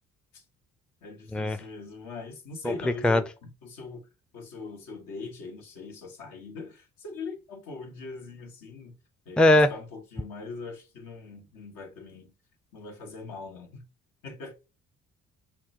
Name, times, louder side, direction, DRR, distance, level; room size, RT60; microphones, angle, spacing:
voice 1, 1.0-4.1 4.3-8.9 9.2-12.3 12.7-13.8 14.2-14.5, left 4 dB, 75° left, 1.3 m, -41 dB
voice 2, 2.6-3.2 9.4-9.7, left 1 dB, 5° left, 0.4 m, -20 dB
5.7 x 2.1 x 2.6 m
supercardioid pair, 60°, 34 cm